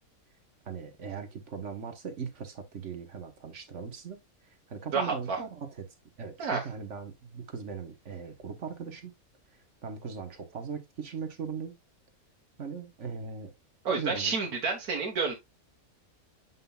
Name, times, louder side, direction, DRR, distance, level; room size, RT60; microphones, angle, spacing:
voice 1, 0.7-5.9 6.2-9.1 9.8-11.7 12.6-13.5 14.0-14.3, right 6 dB, 55° right, 1.4 m, -39 dB
voice 2, 4.9-5.4 6.4-6.7 13.9-15.3, right 5 dB, 75° right, 1.7 m, -29 dB
7.6 x 5.4 x 2.3 m
omnidirectional pair, 1.5 m